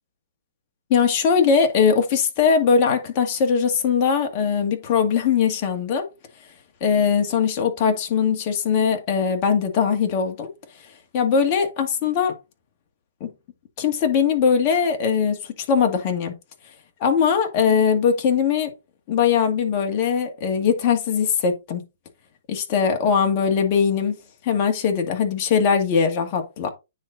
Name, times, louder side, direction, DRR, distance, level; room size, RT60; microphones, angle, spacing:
voice 1, 0.9-6.1 6.8-10.5 11.1-12.3 13.2-13.3 13.8-15.4 15.7-16.3 17.0-18.7 19.1-21.8 22.5-24.2 24.4-26.7, left 6 dB, 30° left, 2.1 m, -20 dB
9.5 x 4.3 x 4.0 m
hypercardioid pair, 155°, 0 cm